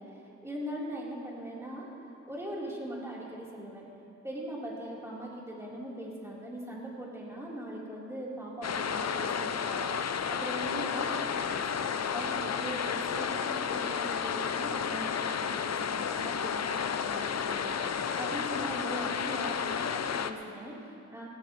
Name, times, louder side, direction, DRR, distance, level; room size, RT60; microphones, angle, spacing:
voice 1, 0.0-3.8 4.2-21.3, right 1 dB, 10° right, -6 dB, 3.7 m, -40 dB
sound 1, 8.6-20.3, left 7 dB, 60° left, 0.6 m, -32 dB
18.0 x 17.0 x 3.1 m, 2.7 s
wide cardioid pair, 85°, 30 cm